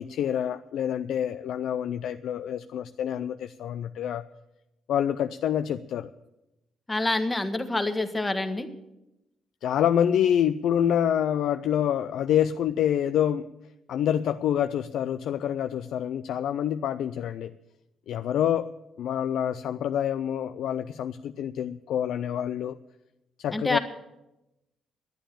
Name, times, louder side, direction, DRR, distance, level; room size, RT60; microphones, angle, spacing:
voice 1, 0.0-4.2 4.9-6.1 9.6-13.5 13.9-17.5 18.1-18.7 19.0-22.8 23.4-23.8, left 10 dB, 75° left, 10 dB, 0.4 m, -27 dB
voice 2, 6.9-8.7 23.5-23.8, left 2 dB, 15° left, 8 dB, 1.4 m, -27 dB
11.5 x 9.2 x 8.8 m, 0.94 s
cardioid pair, 90°, 0 cm